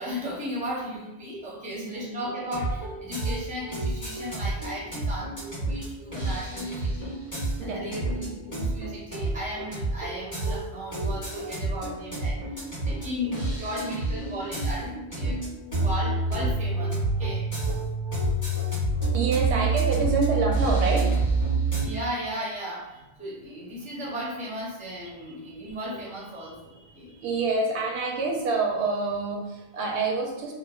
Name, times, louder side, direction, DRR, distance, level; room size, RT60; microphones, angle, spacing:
voice 1, 0.0-7.2 7.6-12.4 12.8-15.4 15.7-17.5 19.4-19.7 21.8-27.2, equal, 10° right, -5 dB, 0.5 m, -35 dB
voice 2, 1.7-2.2 7.6-8.0 10.7-13.7 14.0-15.6 19.1-21.1 23.5-23.6 27.2-30.5, right 3 dB, 85° right, 0 dB, 0.9 m, -29 dB
sound 1, 2.4-21.9, right 3 dB, 20° left, 1.0 m, -28 dB
3.0 x 2.0 x 2.2 m, 0.98 s
omnidirectional pair, 1.1 m